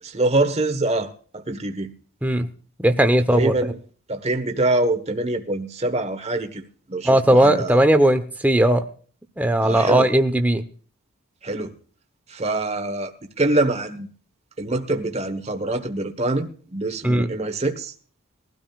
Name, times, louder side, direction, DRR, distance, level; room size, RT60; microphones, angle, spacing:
voice 1, 0.0-1.9 3.3-3.8 4.1-7.8 9.6-10.1 11.4-11.7 12.3-13.1 13.4-14.1 14.6-17.9, right 2 dB, 30° right, 6 dB, 1.3 m, -24 dB
voice 2, 2.8-3.5 7.0-8.8 9.4-10.6 17.0-17.3, right 1 dB, 5° right, 7 dB, 0.9 m, -17 dB
21.0 x 12.5 x 2.4 m, 0.43 s
head